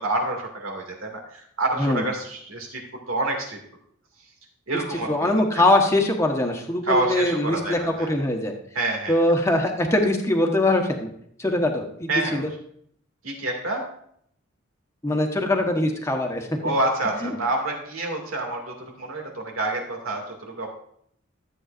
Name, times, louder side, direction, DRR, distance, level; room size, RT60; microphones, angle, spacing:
voice 1, 0.0-2.8 3.1-3.6 4.7-5.3 6.9-8.1 8.7-9.2 12.1-12.4 13.2-13.8 16.6-20.7, right 2 dB, 85° right, 2 dB, 2.3 m, -27 dB
voice 2, 4.7-8.5 9.1-11.1 11.4-12.5 15.0-16.7 17.2-17.3, left 1 dB, 15° left, 2 dB, 1.1 m, -22 dB
13.0 x 7.8 x 2.5 m, 0.68 s
head